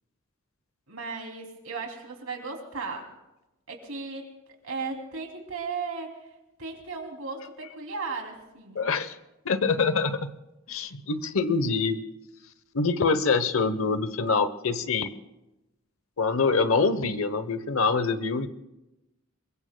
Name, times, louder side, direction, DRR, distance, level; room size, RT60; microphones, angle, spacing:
voice 1, 0.9-3.1 3.7-4.4 4.6-6.2 6.6-8.9, right 4 dB, 70° right, 2 dB, 2.8 m, -36 dB
voice 2, 8.7-9.2 9.4-10.3 10.7-12.0 12.7-15.1 16.2-18.5, left 4 dB, 65° left, 12 dB, 0.9 m, -25 dB
27.0 x 22.5 x 2.2 m, 0.96 s
head